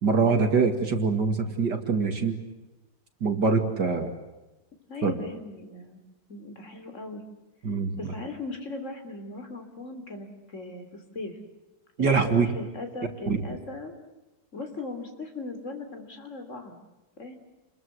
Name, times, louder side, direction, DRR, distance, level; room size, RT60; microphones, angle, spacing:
voice 1, 0.0-2.4 3.2-4.1 5.0-5.1 7.6-7.9 12.0-12.5 13.3-13.4, right 4 dB, 55° right, 6 dB, 2.7 m, -24 dB
voice 2, 4.9-6.0 6.3-7.2 7.7-11.4 12.0-13.9 14.5-16.8 17.2-17.3, left 3 dB, 35° left, 6 dB, 3.5 m, -38 dB
29.0 x 21.5 x 8.0 m, 1.1 s
omnidirectional pair, 2.3 m